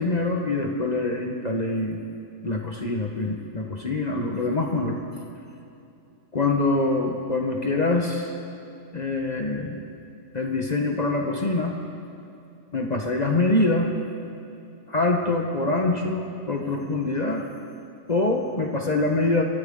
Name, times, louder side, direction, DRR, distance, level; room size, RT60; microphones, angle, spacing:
voice 1, 0.0-2.0 2.4-5.0 6.3-8.4 8.9-9.8 10.3-11.8 12.7-13.9 14.9-17.5 18.1-19.4, left 2 dB, 35° left, 1 dB, 1.1 m, -24 dB
24.0 x 13.5 x 3.7 m, 2.7 s
omnidirectional pair, 1.4 m